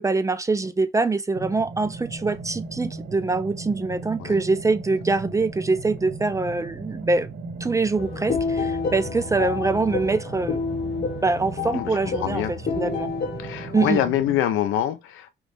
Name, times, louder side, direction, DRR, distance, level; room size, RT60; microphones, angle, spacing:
voice 1, 0.0-7.3 7.6-10.6 11.2-13.1 13.7-14.0, right 3 dB, 15° right, 0.3 m, -24 dB
sound 1, 1.3-14.4, right 3 dB, 70° right, 1.6 m, -37 dB
sound 2, 8.0-14.1, left 5 dB, 50° left, 1.0 m, -29 dB
voice 2, 11.7-12.5 13.4-15.3, left 11 dB, 90° left, 0.6 m, -25 dB
3.0 x 2.7 x 3.3 m
cardioid pair, 90°, 20 cm